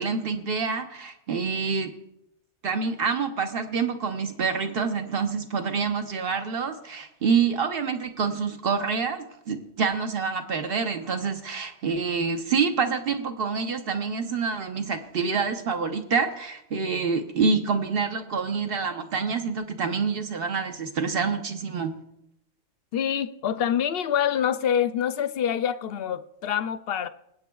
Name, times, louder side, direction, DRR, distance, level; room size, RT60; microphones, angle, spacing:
voice 1, 0.0-1.9 2.6-21.9, right 5 dB, 50° right, 1.0 m, -27 dB
voice 2, 22.9-27.1, left 9 dB, 60° left, 0.7 m, -26 dB
25.5 x 8.5 x 2.3 m
omnidirectional pair, 1.3 m